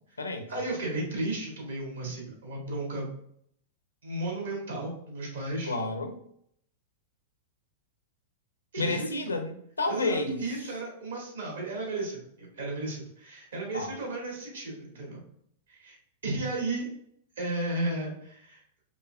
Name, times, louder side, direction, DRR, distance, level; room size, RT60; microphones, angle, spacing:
voice 1, 0.5-3.1 4.0-5.8 8.7-9.0 9.9-15.2 15.7-16.0 16.2-16.9 17.4-18.6, right 2 dB, 75° right, -2 dB, 1.5 m, -34 dB
voice 2, 5.7-6.2 8.8-10.4 13.7-14.0, left 2 dB, 85° left, 6 dB, 0.6 m, -30 dB
4.2 x 3.2 x 2.2 m, 0.68 s
figure-of-eight pair, 100°, 0 cm